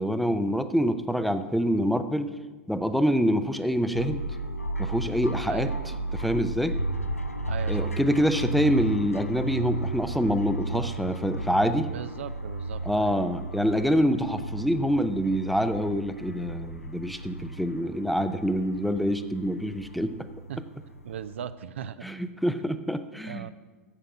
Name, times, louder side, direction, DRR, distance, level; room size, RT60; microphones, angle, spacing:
voice 1, 0.0-2.3 2.7-4.2 4.8-5.7 6.1-6.8 7.7-11.9 12.8-20.2 22.0-23.5, equal, ahead, 10 dB, 0.5 m, -26 dB
sound 1, 3.9-21.5, right 2 dB, 90° left, 0.5 m, -34 dB
voice 2, 5.5-6.0 7.5-7.9 10.7-10.9 11.9-13.1 20.5-20.6 21.0-22.0 23.2-23.5, right 9 dB, 60° right, 14 dB, 0.4 m, -38 dB
9.8 x 7.8 x 5.9 m, 1.2 s
figure-of-eight pair, 95°, 7 cm